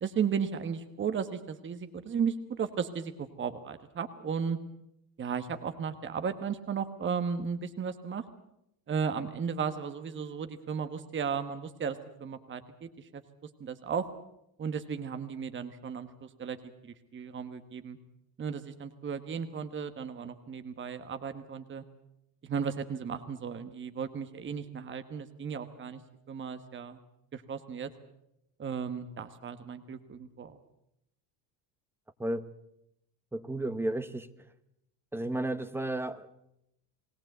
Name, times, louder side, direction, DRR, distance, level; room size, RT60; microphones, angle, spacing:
voice 1, 0.0-4.6 5.2-8.2 8.9-14.1 14.6-16.6 16.8-18.0 18.4-21.8 22.4-26.0 26.3-27.0 27.3-27.9 28.6-30.6, right 6 dB, 25° right, 10 dB, 1.3 m, -35 dB
voice 2, 33.3-34.3 35.1-36.3, right 1 dB, 5° right, 13 dB, 0.8 m, -33 dB
21.0 x 18.0 x 8.0 m, 0.81 s
cardioid pair, 125°, 49 cm